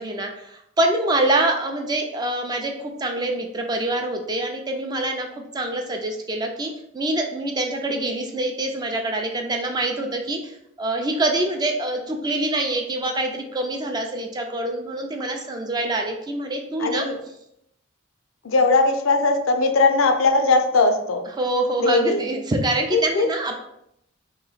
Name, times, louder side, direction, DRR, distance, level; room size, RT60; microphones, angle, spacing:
voice 1, 0.0-5.3 5.5-17.1 21.4-23.6, right 2 dB, 20° right, 3 dB, 0.4 m, -25 dB
voice 2, 16.8-17.2 18.4-21.2 21.8-22.2 22.9-23.3, left 3 dB, 75° left, 7 dB, 0.5 m, -19 dB
3.0 x 3.0 x 3.9 m, 0.79 s
head